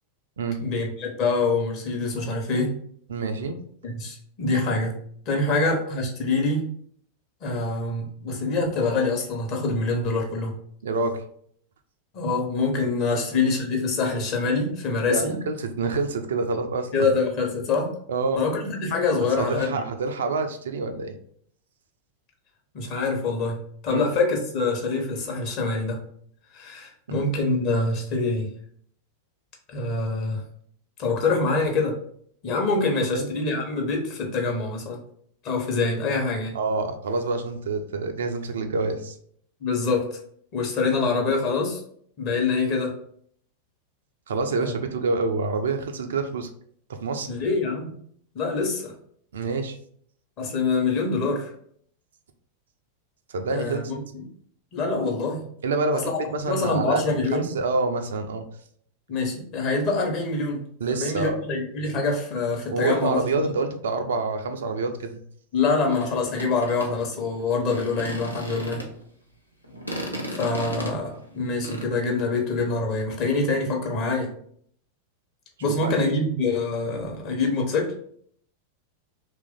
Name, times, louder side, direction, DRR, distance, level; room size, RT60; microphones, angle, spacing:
voice 1, 0.6-2.7 3.8-5.0 5.3-6.6 7.4-10.5 12.1-15.4 16.9-17.9 18.4-19.8 22.7-26.0 26.5-28.5 29.7-30.4 31.0-32.0 32.4-35.0 35.4-36.6 39.6-40.1 40.5-41.8 42.2-43.0 44.6-44.8 47.3-47.9 48.3-48.9 50.4-51.5 53.5-54.2 54.7-55.4 55.9-56.0 56.4-57.5 59.1-63.2 65.5-68.8 70.3-74.3 75.6-77.9, left 3 dB, 40° left, 1 dB, 1.0 m, -25 dB
voice 2, 3.1-3.6 5.5-5.6 10.8-11.2 13.1-13.3 15.1-17.1 18.1-18.4 19.4-21.2 23.9-24.0 33.1-33.3 36.5-39.2 44.3-46.5 46.9-47.3 49.3-49.8 53.3-53.8 55.6-58.4 60.8-61.4 62.7-65.2 68.4-68.6 75.7-75.9, right 3 dB, 65° right, 6 dB, 0.4 m, -27 dB
sound 1, 65.9-69.0 69.6-71.8, equal, 90° left, 0.6 m, -35 dB
3.0 x 2.6 x 3.6 m, 0.63 s
figure-of-eight pair, 90°, 0 cm